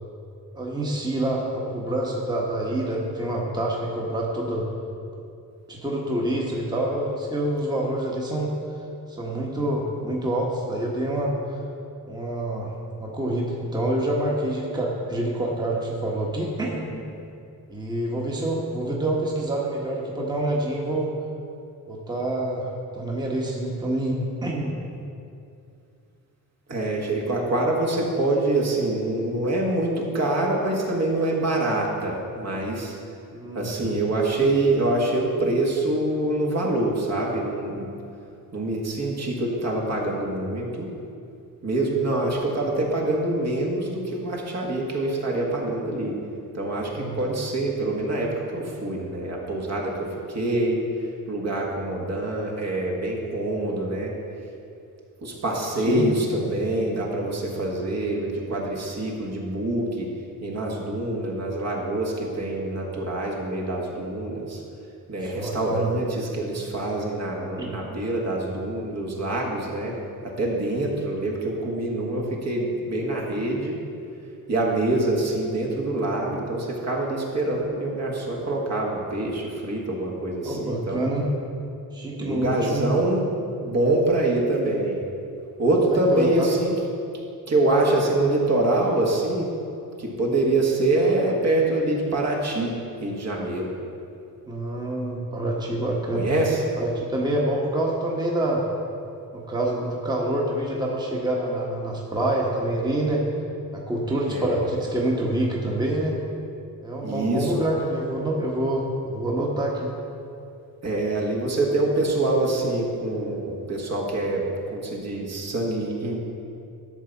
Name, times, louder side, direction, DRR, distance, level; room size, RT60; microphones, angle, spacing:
voice 1, 0.5-4.7 5.7-8.5 9.1-11.3 12.0-12.7 13.0-17.0 17.7-21.1 21.9-24.8 33.3-34.0 46.9-47.4 55.8-56.0 65.2-65.9 67.6-67.7 80.4-81.2 81.9-82.8 85.9-86.5 94.5-96.2 96.8-98.6 99.3-103.2 103.7-106.1 106.8-109.9, right 1 dB, 10° right, -3 dB, 1.1 m, -27 dB
voice 2, 26.7-33.0 33.5-37.9 38.5-40.9 41.6-46.2 46.5-54.1 55.2-60.1 60.4-64.6 65.1-70.0 70.2-73.8 74.5-81.0 82.2-83.3 83.6-85.0 85.6-86.7 87.5-89.5 90.0-93.7 94.7-94.8 96.1-96.6 104.3-104.7 107.0-107.6 110.8-116.2, right 2 dB, 45° right, -2 dB, 1.6 m, -25 dB
12.0 x 4.1 x 7.0 m, 2.5 s
cardioid pair, 130°, 36 cm